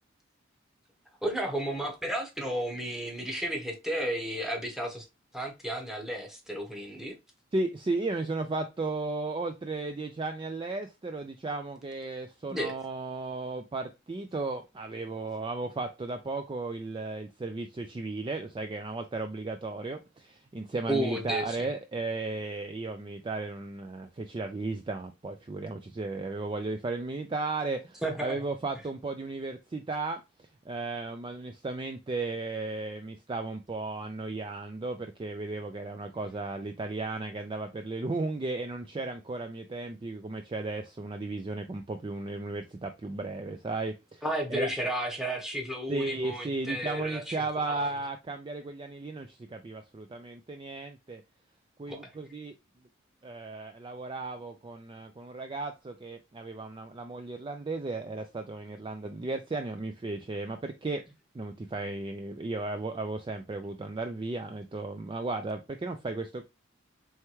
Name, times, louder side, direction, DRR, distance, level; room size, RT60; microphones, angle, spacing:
voice 1, 1.2-5.1 5.3-7.2 12.5-12.7 20.9-21.7 28.0-28.4 44.2-47.9 51.9-52.1, right 1 dB, ahead, 1.0 m, -33 dB
voice 2, 7.5-30.2 30.7-44.2 44.5-44.7 45.9-51.2 51.8-52.6 53.2-61.0 61.3-66.5, right 3 dB, 25° right, 0.3 m, -35 dB
4.5 x 3.4 x 3.0 m
head